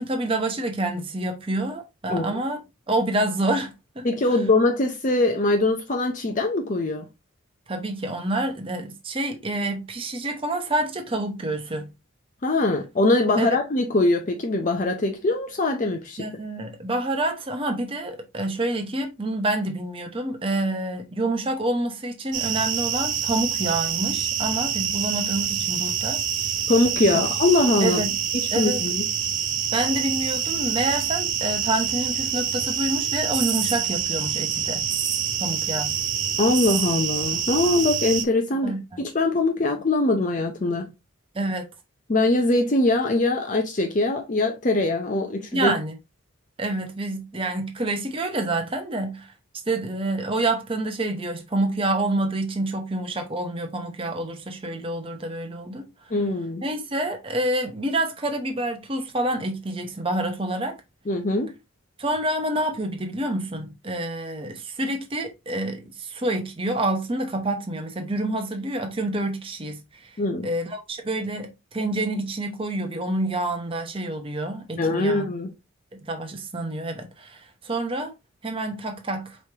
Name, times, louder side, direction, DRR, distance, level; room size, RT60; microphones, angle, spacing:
voice 1, 0.0-4.1 7.7-11.9 13.4-13.5 16.2-26.2 27.8-28.1 28.5-28.8 29.7-34.8 35.4-35.9 38.6-39.0 41.3-41.7 45.5-46.0 46.6-49.3 49.7-55.9 56.6-60.8 62.0-70.2 70.4-75.3 76.0-78.1 78.4-79.4, right 1 dB, 25° right, 0.7 m, -27 dB
voice 2, 4.0-7.1 12.4-16.2 26.7-28.0 28.6-29.0 36.4-40.9 42.1-45.8 56.1-56.6 61.1-61.5 70.2-70.5 74.8-75.5, left 2 dB, 40° left, 0.6 m, -22 dB
sound 1, 22.3-38.2, right 8 dB, 65° right, 0.6 m, -26 dB
5.0 x 3.1 x 2.8 m
head